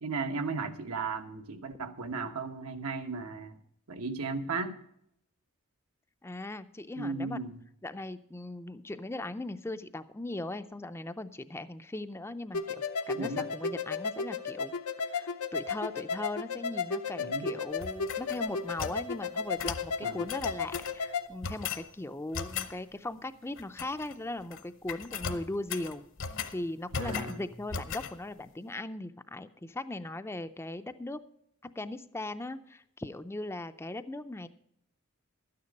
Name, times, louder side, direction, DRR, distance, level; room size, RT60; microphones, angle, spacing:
voice 1, 0.0-3.6 3.9-4.8 7.0-7.6 13.2-13.5 17.2-17.5 20.0-20.3 26.9-27.5, right 4 dB, 85° right, 6 dB, 1.2 m, -36 dB
voice 2, 6.2-7.4 7.8-14.7 15.1-26.0 26.5-31.2 31.8-34.5, left 2 dB, 10° left, 11 dB, 0.4 m, -39 dB
sound 1, 12.5-21.3, left 5 dB, 90° left, 0.8 m, -34 dB
sound 2, 17.8-19.0 19.6-19.9 20.3-21.0 21.4-21.9 22.3-22.7 23.6-24.1 24.4-24.6 24.9-26.6 26.9-27.4 27.7-28.1, left 6 dB, 60° left, 0.9 m, -37 dB
12.5 x 9.6 x 5.2 m, 0.76 s
head